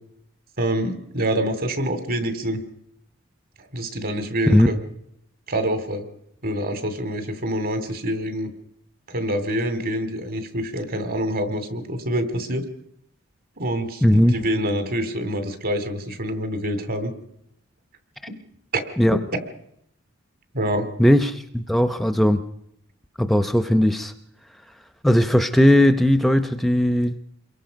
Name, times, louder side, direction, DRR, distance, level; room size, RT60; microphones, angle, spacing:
voice 1, 0.6-2.6 3.6-4.8 5.5-6.0 6.4-8.5 9.1-12.7 13.6-17.1 18.7-18.8 20.5-20.9, right 1 dB, 50° right, 9 dB, 2.7 m, -26 dB
voice 2, 14.0-14.3 19.0-19.2 21.0-22.4 23.2-24.1 25.0-27.2, equal, ahead, 8 dB, 0.8 m, -18 dB
27.5 x 22.5 x 5.2 m, 0.76 s
head